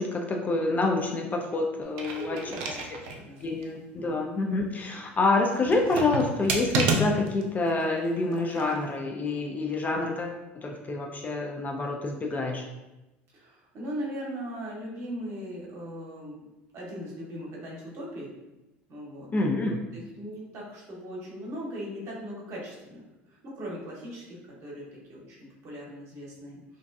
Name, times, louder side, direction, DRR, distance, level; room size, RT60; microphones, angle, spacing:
voice 1, 0.0-2.4 3.4-10.4 10.6-12.7 19.3-19.8, left 2 dB, 25° left, 1 dB, 0.3 m, -27 dB
sound 1, 1.8-3.2 3.6-3.7 5.6-7.4 8.3-8.8, right 3 dB, 65° right, 0.4 m, -30 dB
voice 2, 2.1-3.5 4.0-4.2 13.3-16.5 16.7-18.4 18.9-19.3 19.9-23.0 23.3-26.8, equal, 45° right, -4 dB, 0.9 m, -39 dB
2.6 x 2.2 x 2.3 m, 1.0 s
hypercardioid pair, 70°, 7 cm